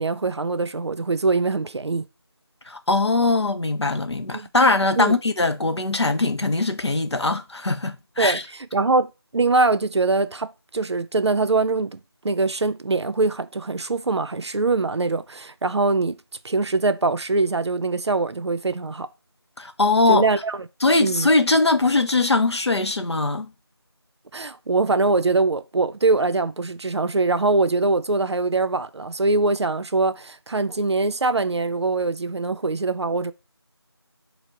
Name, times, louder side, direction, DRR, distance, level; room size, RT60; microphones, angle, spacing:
voice 1, 0.0-2.1 4.3-4.5 5.0-5.1 8.2-16.2 16.4-19.1 20.1-20.7 21.0-21.3 24.3-33.3, right 3 dB, 85° right, 0.4 m, -23 dB
voice 2, 2.7-8.4 19.6-20.2 20.8-23.5, left 3 dB, 90° left, 0.6 m, -21 dB
4.5 x 2.0 x 3.6 m
figure-of-eight pair, 180°, 14 cm